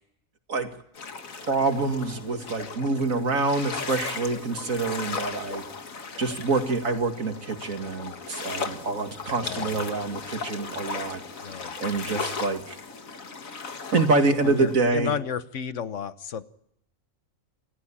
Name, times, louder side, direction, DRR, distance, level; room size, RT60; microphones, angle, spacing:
sound 1, 1.0-14.8, left 4 dB, 85° left, 2.1 m, -37 dB
voice 1, 1.4-5.6 6.2-11.2 11.8-12.8 13.9-15.1, right 3 dB, 85° right, 5 dB, 2.7 m, -26 dB
voice 2, 9.4-9.9 11.4-11.7 14.4-16.4, left 7 dB, 65° left, 13 dB, 1.3 m, -32 dB
28.0 x 14.5 x 8.7 m, 0.78 s
omnidirectional pair, 1.4 m